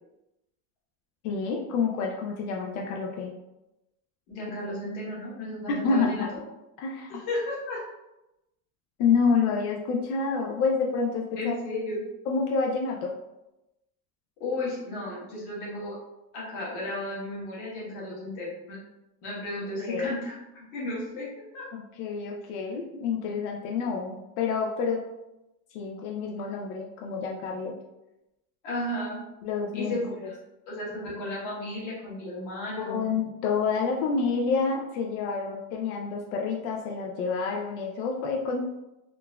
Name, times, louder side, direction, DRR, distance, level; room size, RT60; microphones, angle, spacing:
voice 1, 1.2-3.3 5.7-6.3 6.8-7.2 9.0-11.5 12.3-13.1 19.8-20.1 21.7-25.0 25.7-27.7 29.4-30.3 32.9-38.6, left 5 dB, 90° left, 0 dB, 0.6 m, -28 dB
voice 2, 4.3-6.2 7.1-7.8 11.4-12.0 14.4-16.0 16.3-18.8 19.2-20.3 20.7-21.7 28.6-29.2 29.7-30.3 30.7-33.0, left 1 dB, 45° left, -6 dB, 1.3 m, -34 dB
3.7 x 2.5 x 2.3 m, 0.94 s
cardioid pair, 170°, 43 cm